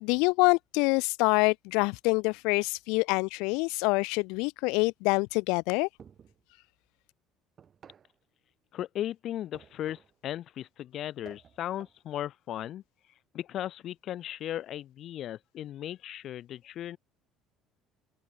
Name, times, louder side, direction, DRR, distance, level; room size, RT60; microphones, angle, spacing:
voice 1, 0.0-5.9, left 29 dB, 80° left, 0.4 m, -26 dB
sound 1, 6.0-6.5 7.6-8.2 9.5-10.2 11.2-12.0, right 7 dB, 40° right, 4.7 m, -54 dB
voice 2, 8.7-12.8 13.3-17.0, left 12 dB, 55° left, 0.8 m, -36 dB
open air
supercardioid pair, 90°, 0 cm